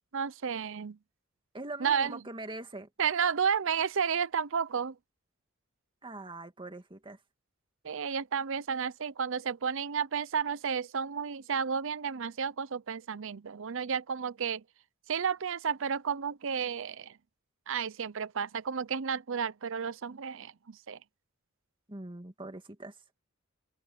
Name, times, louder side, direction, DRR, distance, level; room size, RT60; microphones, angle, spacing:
voice 1, 0.1-1.0 1.8-2.2 3.0-5.0 7.8-14.6 15.1-17.2 17.7-21.0, right 6 dB, 65° right, 0.7 m, -32 dB
voice 2, 1.5-2.9 6.0-7.2 21.9-23.0, right 2 dB, 25° right, 2.1 m, -42 dB
head